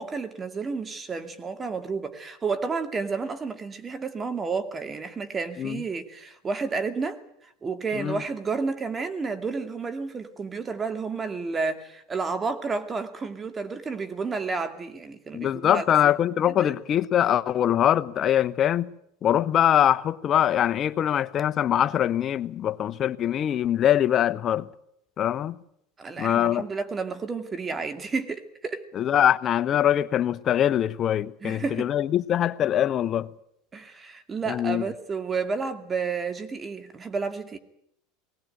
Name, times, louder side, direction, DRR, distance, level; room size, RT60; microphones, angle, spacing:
voice 1, 0.0-7.2 7.6-15.8 16.5-16.7 26.0-28.8 31.4-31.9 33.7-37.6, right 4 dB, 25° right, 2.4 m, -31 dB
voice 2, 15.3-18.9 19.2-24.7 25.2-25.6 26.2-26.6 28.9-33.3 34.5-34.9, left 10 dB, 40° left, 0.9 m, -23 dB
20.5 x 18.0 x 9.0 m
hypercardioid pair, 100°, 0 cm